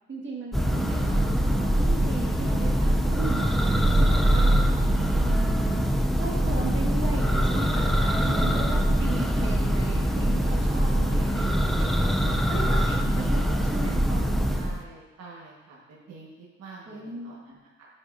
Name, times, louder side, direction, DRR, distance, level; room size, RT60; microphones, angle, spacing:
voice 1, 0.1-4.5 5.2-11.9 12.5-14.6 16.9-17.4, right 2 dB, 40° right, -3 dB, 1.8 m, -37 dB
Church bell, 0.5-14.8, equal, ahead, 0.5 m, -23 dB
voice 2, 7.9-8.6 10.7-11.1 11.9-13.1 14.6-17.9, right 4 dB, 60° right, -5 dB, 1.5 m, -46 dB
10.5 x 5.5 x 2.6 m, 1.2 s
cardioid pair, 90°, 30 cm